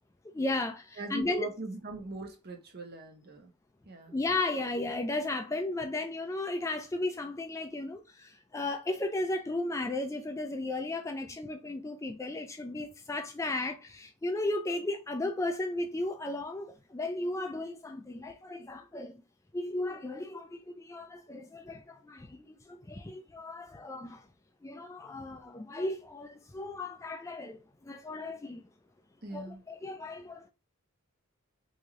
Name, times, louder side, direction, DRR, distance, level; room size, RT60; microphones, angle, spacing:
voice 1, 0.3-1.5 4.1-19.2 19.5-24.2 24.6-28.6 29.3-30.5, left 2 dB, 15° left, 0.3 m, -35 dB
voice 2, 1.0-3.5 3.8-4.1 29.2-29.6, right 3 dB, 45° right, 0.9 m, -41 dB
3.1 x 2.7 x 3.6 m
head